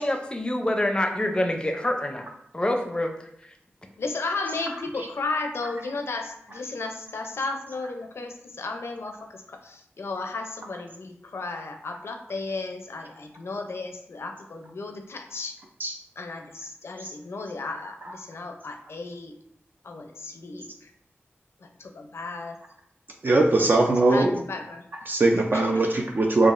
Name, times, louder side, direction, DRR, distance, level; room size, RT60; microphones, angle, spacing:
voice 1, 0.0-2.2 2.5-3.1, left 1 dB, 20° left, 4 dB, 0.5 m, -26 dB
voice 2, 4.0-15.6 16.2-19.4 19.8-20.9 21.6-22.6 24.1-24.8 25.5-25.6, left 3 dB, 75° left, 5 dB, 0.5 m, -34 dB
voice 3, 23.2-24.4 25.1-26.5, right 2 dB, 50° right, 1 dB, 0.4 m, -21 dB
4.9 x 2.4 x 2.5 m, 0.75 s
wide cardioid pair, 70°, 4 cm